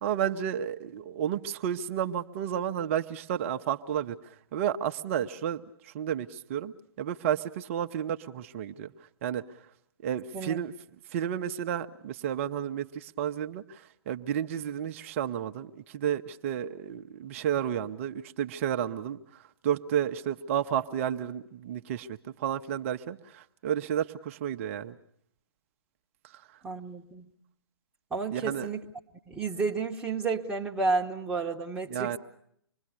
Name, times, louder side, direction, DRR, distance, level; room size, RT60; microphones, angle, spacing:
voice 1, 0.0-8.9 9.2-9.4 10.0-10.7 11.1-25.0 26.3-26.4 28.3-28.7 31.9-32.2, right 9 dB, 30° right, 7 dB, 0.8 m, -32 dB
voice 2, 26.6-27.3 28.1-28.8 29.3-32.2, right 4 dB, 5° right, -2 dB, 1.2 m, -31 dB
26.0 x 21.5 x 6.7 m, 0.71 s
figure-of-eight pair, 125°, 13 cm